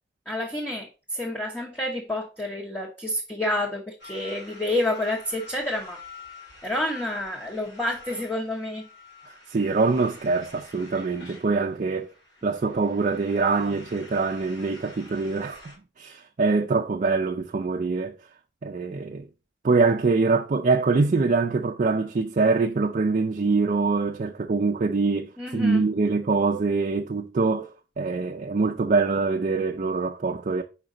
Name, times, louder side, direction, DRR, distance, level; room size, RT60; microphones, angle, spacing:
voice 1, 0.3-6.0 6.6-8.9 25.4-25.8, left 1 dB, 10° left, 0.8 m, -29 dB
sound 1, 4.0-15.7, left 3 dB, 90° left, 2.5 m, -47 dB
voice 2, 9.3-12.1 12.4-18.1 18.6-19.3 19.6-30.6, right 4 dB, 45° right, 0.4 m, -24 dB
5.1 x 5.0 x 3.9 m
head